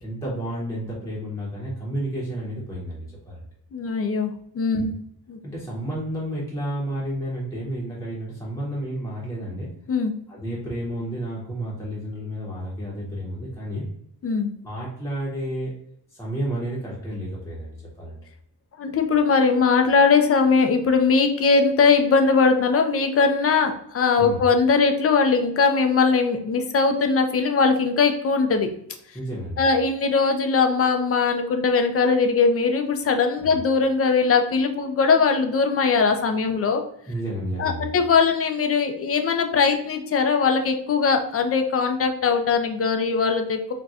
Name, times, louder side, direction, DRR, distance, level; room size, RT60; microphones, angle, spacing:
voice 1, 0.0-3.5 4.7-4.9 5.4-9.7 10.3-13.9 14.6-15.7 16.1-18.2 24.2-24.4 29.1-29.6 33.4-33.6 37.1-37.9, right 1 dB, 10° left, -5 dB, 0.7 m, -31 dB
voice 2, 3.7-4.9 5.3-5.4 9.9-10.1 14.2-14.5 18.8-28.7 29.6-36.8 37.6-43.7, left 5 dB, 35° left, 6 dB, 0.4 m, -20 dB
4.1 x 2.1 x 2.3 m, 0.73 s
wide cardioid pair, 145°, 40 cm